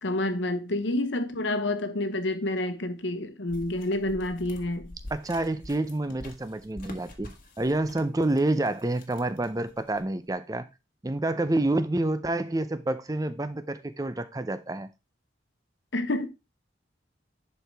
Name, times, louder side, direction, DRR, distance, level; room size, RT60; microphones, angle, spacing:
voice 1, 0.0-5.0 15.9-16.3, left 1 dB, 70° left, 1.1 m, -28 dB
sound 1, 3.5-10.2, left 1 dB, 45° left, 1.3 m, -47 dB
voice 2, 5.1-10.7 11.0-14.9, right 2 dB, 20° right, 0.5 m, -28 dB
10.5 x 4.6 x 3.4 m
head